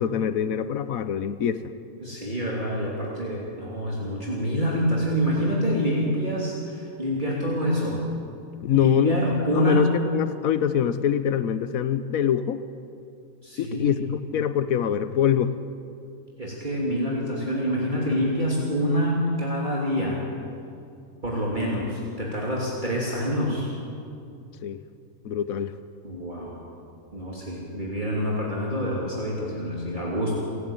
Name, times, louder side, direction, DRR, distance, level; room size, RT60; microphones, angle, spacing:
voice 1, 0.0-1.6 8.6-12.6 13.6-15.6 24.6-24.8 25.2-25.8, left 9 dB, 80° left, 12 dB, 1.2 m, -24 dB
voice 2, 2.0-8.0 8.7-9.9 13.4-14.0 16.4-20.2 21.2-23.7 26.0-26.6 27.1-30.4, equal, 35° right, -5 dB, 3.2 m, -26 dB
29.5 x 11.5 x 9.0 m, 2.5 s
omnidirectional pair, 1.5 m